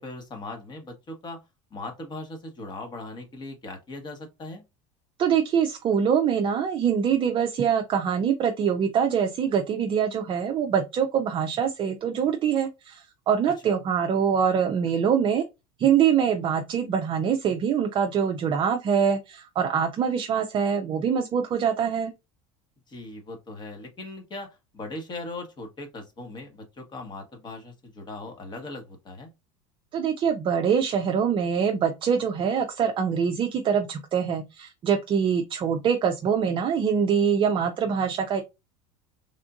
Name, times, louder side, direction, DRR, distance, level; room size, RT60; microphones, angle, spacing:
voice 1, 0.0-1.4 1.7-4.6 22.9-24.5 24.7-29.3, left 2 dB, 30° left, 1.3 m, -39 dB
voice 2, 5.2-15.4 15.8-22.1 29.9-38.4, right 7 dB, 35° right, 0.5 m, -24 dB
3.5 x 2.5 x 2.5 m
supercardioid pair, 110°, 15 cm